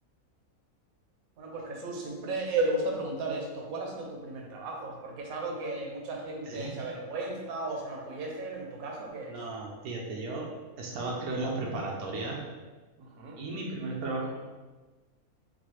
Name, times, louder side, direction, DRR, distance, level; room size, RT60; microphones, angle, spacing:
voice 1, 1.4-9.4 13.0-13.4, right 2 dB, 75° right, 0 dB, 1.1 m, -34 dB
voice 2, 6.4-6.8 9.3-10.5 10.8-12.4 13.3-14.4, right 2 dB, 90° right, -2 dB, 1.1 m, -35 dB
4.0 x 2.3 x 2.9 m, 1.3 s
omnidirectional pair, 1.5 m